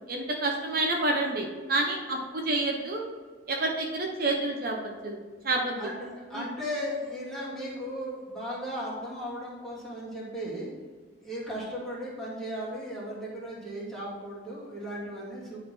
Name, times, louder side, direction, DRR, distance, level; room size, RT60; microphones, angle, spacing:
voice 1, 0.1-3.0 3.5-5.2 5.4-5.8 6.3-6.5, right 2 dB, 55° right, 1 dB, 0.9 m, -28 dB
voice 2, 5.8-10.7 11.2-15.6, equal, ahead, -7 dB, 2.3 m, -36 dB
10.5 x 4.1 x 4.4 m, 1.5 s
head